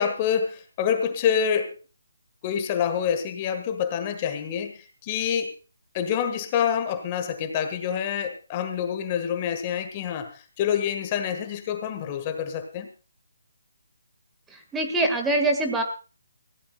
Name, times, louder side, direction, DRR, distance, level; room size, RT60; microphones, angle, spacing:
voice 1, 0.0-1.7 2.4-5.5 5.9-12.9, left 8 dB, 25° left, 8 dB, 1.5 m, -27 dB
voice 2, 14.5-15.8, right 2 dB, 10° right, 4 dB, 1.7 m, -24 dB
20.5 x 15.5 x 2.3 m, 0.33 s
figure-of-eight pair, 150°, 0 cm